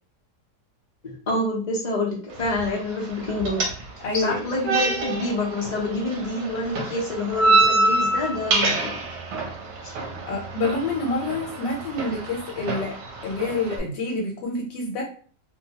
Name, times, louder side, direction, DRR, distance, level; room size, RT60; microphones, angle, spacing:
voice 1, 1.0-3.6 4.1-8.9, left 2 dB, 65° left, -3 dB, 0.4 m, -27 dB
sound 1, 2.3-13.8, right 2 dB, 70° right, 1.1 m, -27 dB
voice 2, 4.0-4.4 10.3-13.0 13.2-15.0, left 3 dB, 80° left, 0 dB, 1.3 m, -27 dB
2.8 x 2.2 x 2.7 m, 0.43 s
omnidirectional pair, 1.9 m